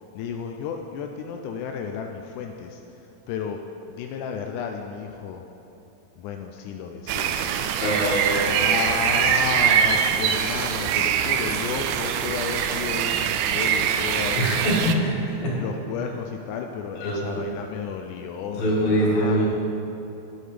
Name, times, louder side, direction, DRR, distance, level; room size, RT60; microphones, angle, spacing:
voice 1, 0.2-2.8 3.3-3.6 3.9-5.4 6.2-7.4 8.4-15.0 15.6-19.6, left 6 dB, 85° left, 4 dB, 2.0 m, -32 dB
sound 1, 7.1-15.0, right 8 dB, 85° right, 1.5 m, -23 dB
voice 2, 7.8-8.5 14.4-15.1 15.4-15.6 16.9-17.4 18.6-19.6, equal, 65° left, -5 dB, 3.2 m, -23 dB
9.6 x 8.6 x 5.0 m, 3.0 s
omnidirectional pair, 3.5 m